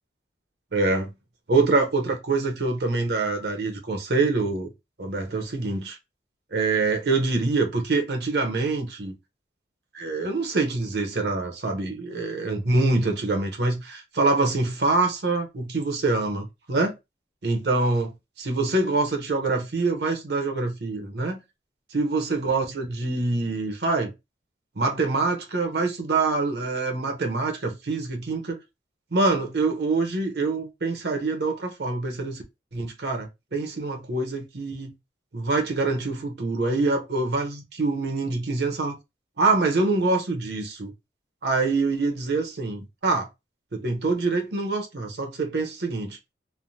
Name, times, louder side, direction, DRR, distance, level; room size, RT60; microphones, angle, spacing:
voice 1, 0.7-1.1 1.5-4.7 5.0-6.0 6.5-9.1 9.9-16.9 17.4-21.4 21.9-24.1 24.8-28.6 29.1-32.4 32.7-34.9 35.3-39.0 39.4-40.9 41.4-43.3 43.7-46.2, right 3 dB, 70° right, 0.8 m, -25 dB
3.2 x 2.1 x 2.7 m
head